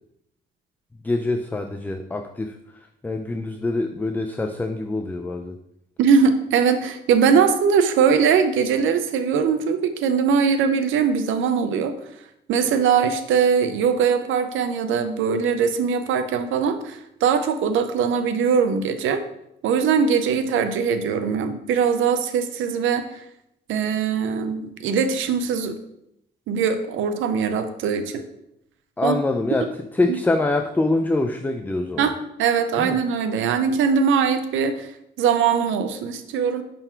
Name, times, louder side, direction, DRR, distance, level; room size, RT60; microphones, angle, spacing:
voice 1, 1.0-5.6 29.0-32.1 32.8-33.0, left 2 dB, 10° left, 6 dB, 0.4 m, -25 dB
voice 2, 6.0-11.9 12.5-19.2 19.6-23.1 23.7-25.8 26.5-28.2 29.0-29.2 32.0-32.1 32.4-34.9 35.2-36.6, right 6 dB, 80° right, 9 dB, 0.6 m, -21 dB
5.6 x 3.9 x 4.5 m, 0.79 s
cardioid pair, 90°, 20 cm